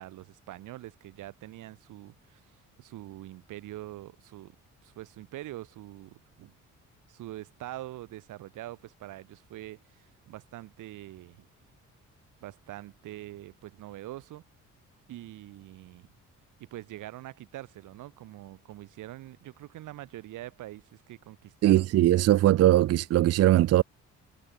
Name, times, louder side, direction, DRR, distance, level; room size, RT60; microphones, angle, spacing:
voice 1, 0.0-2.5 2.8-4.6 4.8-6.6 7.1-11.5 12.4-14.4 15.1-16.1 16.6-21.9, right 15 dB, 85° right, 5.7 m, -44 dB
voice 2, 21.6-23.8, right 14 dB, 55° right, 0.4 m, -20 dB
cardioid pair, 90°, 30 cm